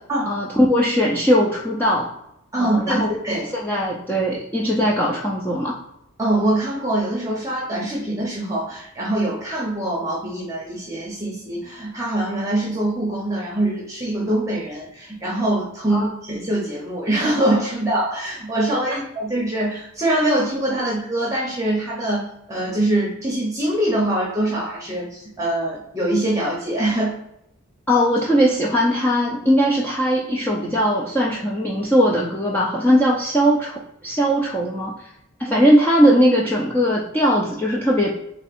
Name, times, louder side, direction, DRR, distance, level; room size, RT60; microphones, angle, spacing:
voice 1, 0.3-2.1 2.6-3.1 3.5-5.8 15.9-16.1 18.9-19.0 27.9-34.9 35.4-38.1, equal, 10° left, -4 dB, 0.4 m, -19 dB
voice 2, 2.5-3.5 6.2-27.2 35.5-35.6, right 1 dB, 15° right, -4 dB, 0.8 m, -23 dB
3.5 x 3.4 x 4.1 m, 0.80 s
head